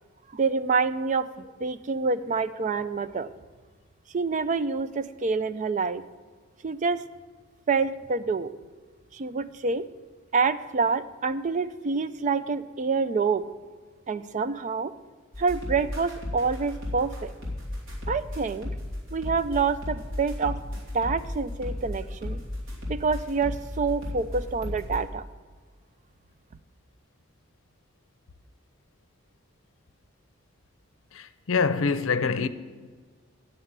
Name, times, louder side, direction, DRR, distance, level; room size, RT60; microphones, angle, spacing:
voice 1, 0.3-3.3 4.1-6.0 6.6-7.0 7.7-8.5 9.1-9.8 10.3-13.4 14.1-14.9 15.4-17.3 18.1-18.7 19.1-20.6 20.9-22.4 22.9-25.2, right 4 dB, 40° right, 0.4 m, -27 dB
sound 1, 15.3-25.0, left 1 dB, 75° right, 2.8 m, -35 dB
voice 2, 31.1-32.5, left 5 dB, 85° left, 0.6 m, -25 dB
8.9 x 6.8 x 8.0 m
head